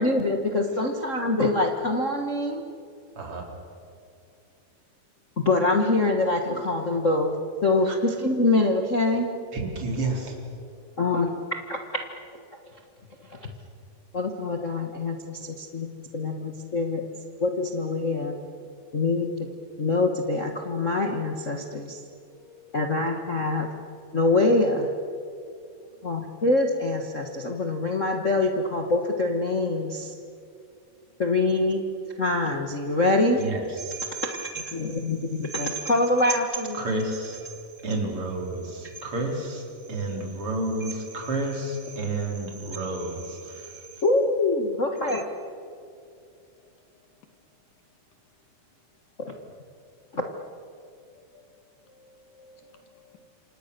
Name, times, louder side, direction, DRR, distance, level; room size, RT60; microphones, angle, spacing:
voice 1, 0.0-2.6 5.4-9.3 11.0-11.4 11.7-11.8 13.4-13.5 14.1-15.9 16.1-17.0 17.4-18.3 18.9-19.3 19.8-22.0 22.7-23.7 24.1-24.9 26.0-30.1 31.2-31.8 32.2-33.4 34.0-36.8 44.0-45.3 49.3-49.4 50.1-50.2, left 2 dB, 45° left, 3 dB, 1.0 m, -24 dB
voice 2, 3.2-3.5 7.8-7.9 9.5-10.4 33.4-34.0 36.7-37.4 37.8-43.7, right 2 dB, 45° right, 1 dB, 4.4 m, -30 dB
voice 3, 22.3-22.9 25.5-25.6 49.3-49.4 51.9-53.2, left 5 dB, 80° left, 6 dB, 3.9 m, -54 dB
28.5 x 26.0 x 6.8 m, 2.5 s
omnidirectional pair, 3.7 m